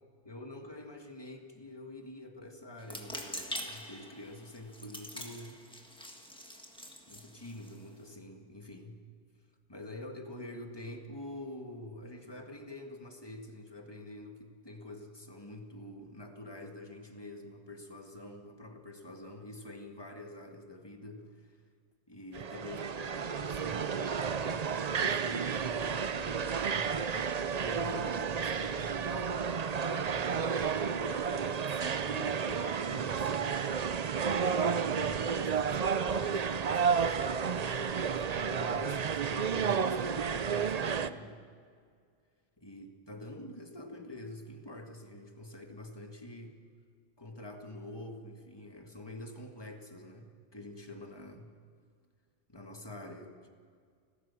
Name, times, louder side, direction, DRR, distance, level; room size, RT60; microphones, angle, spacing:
voice 1, 0.2-5.6 7.1-9.0 9.7-21.6 22.1-27.3 27.6-29.4 30.0-33.7 34.4-41.4 42.6-46.6 47.2-51.5 52.5-53.5, left 1 dB, 25° left, 4 dB, 1.9 m, -46 dB
sound 1, 2.8-8.1, equal, 5° left, 1.6 m, -44 dB
sound 2, 22.3-41.1, right 6 dB, 45° right, 0.7 m, -31 dB
30.0 x 12.5 x 7.1 m, 2.1 s
omnidirectional pair, 1.1 m